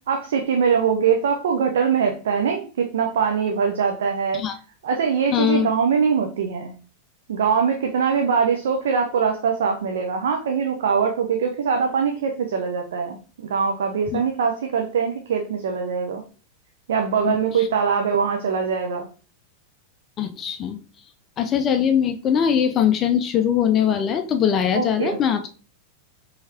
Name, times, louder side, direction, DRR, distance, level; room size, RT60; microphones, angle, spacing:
voice 1, 0.1-4.4 4.8-6.7 7.3-16.2 16.9-19.1 24.7-25.2, right 6 dB, 60° right, 3 dB, 0.5 m, -22 dB
voice 2, 5.3-5.7 14.1-14.2 17.2-17.7 20.2-20.8 21.4-25.5, left 8 dB, 30° left, 7 dB, 0.4 m, -21 dB
4.6 x 3.2 x 2.8 m, 0.39 s
figure-of-eight pair, 90°, 0 cm